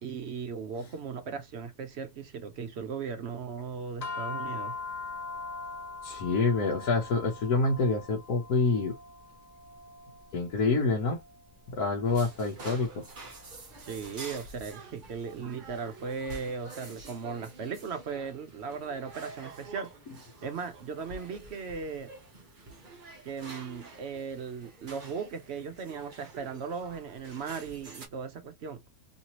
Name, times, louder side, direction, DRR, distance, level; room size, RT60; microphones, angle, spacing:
voice 1, 0.0-4.7 13.8-19.9 20.4-22.1 23.2-28.8, right 6 dB, 60° right, 0.7 m, -37 dB
sound 1, 4.0-14.5, left 4 dB, 50° left, 0.5 m, -42 dB
voice 2, 6.0-8.9 10.3-11.2 11.8-13.0, left 3 dB, 70° left, 1.3 m, -27 dB
sound 2, 12.1-28.1, right 3 dB, 35° right, 1.0 m, -48 dB
3.2 x 2.8 x 2.8 m
omnidirectional pair, 1.7 m